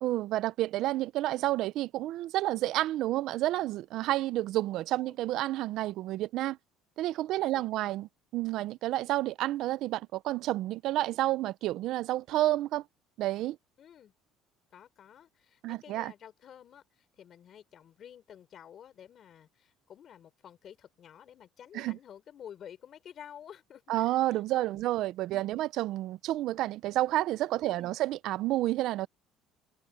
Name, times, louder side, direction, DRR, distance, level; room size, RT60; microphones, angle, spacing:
voice 1, 0.0-6.6 7.0-12.8 13.2-13.6 15.6-16.1 21.7-22.0 23.9-29.1, right 15 dB, 60° right, 0.6 m, -30 dB
voice 2, 7.3-7.9 13.8-14.1 14.7-24.8 25.3-25.6 27.6-28.0, left 9 dB, 40° left, 4.6 m, -51 dB
cardioid pair, 140°, 0 cm